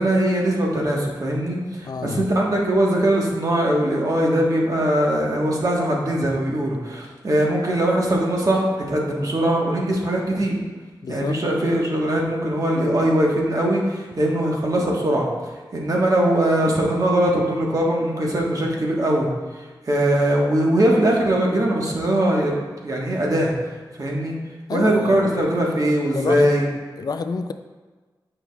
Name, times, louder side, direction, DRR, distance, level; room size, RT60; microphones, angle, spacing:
voice 1, 0.0-10.6 11.1-15.3 15.7-23.5 23.9-24.3 24.7-26.7, right 1 dB, 50° right, -2 dB, 1.2 m, -21 dB
voice 2, 1.9-2.3 11.0-11.4 24.7-25.9 26.1-26.4 27.0-27.5, left 4 dB, 55° left, 9 dB, 0.3 m, -29 dB
8.9 x 5.5 x 2.3 m, 1.3 s
wide cardioid pair, 90°, 8 cm